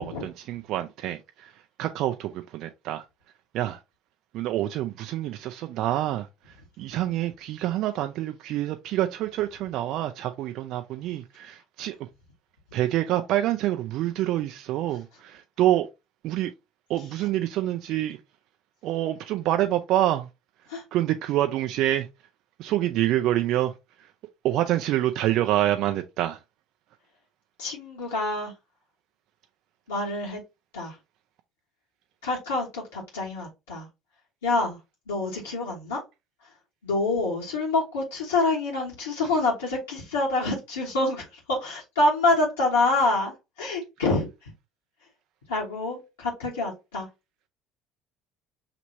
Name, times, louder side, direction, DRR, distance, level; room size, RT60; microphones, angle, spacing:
voice 1, 0.0-1.5 1.8-3.0 3.5-3.8 4.3-6.3 6.8-12.0 12.7-15.9 16.2-16.5 16.9-18.2 18.8-20.3 20.9-22.1 22.6-23.7 24.4-26.4, right 13 dB, 55° right, 0.4 m, -26 dB
voice 2, 27.6-28.5 29.9-30.4 30.7-31.0 32.2-33.9 34.4-34.8 35.1-36.0 36.8-44.5 45.5-47.1, left 2 dB, 80° left, 1.3 m, -26 dB
5.9 x 2.9 x 2.7 m
figure-of-eight pair, 60°, 0 cm